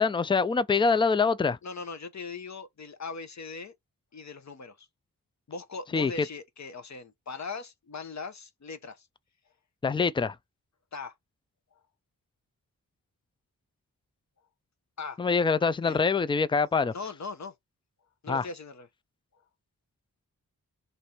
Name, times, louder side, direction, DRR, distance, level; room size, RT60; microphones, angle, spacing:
voice 1, 0.0-1.6 5.9-6.1 9.8-10.4 15.2-16.9 18.3-18.5, left 5 dB, 15° left, 0.3 m, -24 dB
voice 2, 1.6-3.8 4.1-4.9 5.5-9.1 10.9-11.1 11.7-11.8 15.0-15.2 15.8-16.0 16.9-17.5 18.2-18.9, left 4 dB, 50° left, 0.7 m, -40 dB
3.3 x 2.6 x 4.1 m
cardioid pair, 50°, 36 cm